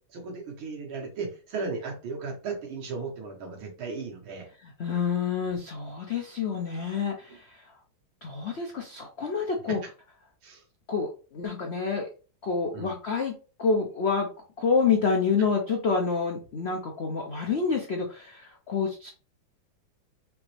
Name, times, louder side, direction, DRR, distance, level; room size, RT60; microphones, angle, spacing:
voice 1, 0.1-4.5 9.7-9.8 10.4-10.6 12.7-12.9 15.4-15.5, right 4 dB, 90° right, 0 dB, 2.2 m, -36 dB
voice 2, 4.8-7.6 8.2-9.8 10.9-12.1 12.4-13.3 13.6-14.3 14.6-19.1, left 5 dB, 75° left, 1 dB, 0.5 m, -28 dB
5.1 x 3.0 x 3.2 m, 0.36 s
omnidirectional pair, 2.2 m